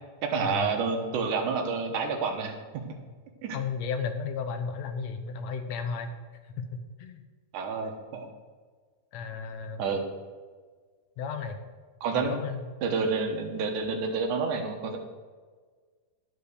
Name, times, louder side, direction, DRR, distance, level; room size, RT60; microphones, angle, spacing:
voice 1, 0.2-2.8 3.4-3.6 7.5-8.3 9.8-10.0 12.0-12.4 12.8-15.0, right 4 dB, 80° right, 4 dB, 2.7 m, -29 dB
voice 2, 3.5-6.1 6.7-7.2 9.1-9.9 11.2-11.6 12.2-12.6, left 5 dB, 70° left, 8 dB, 1.9 m, -34 dB
11.5 x 5.5 x 6.4 m, 1.5 s
omnidirectional pair, 3.6 m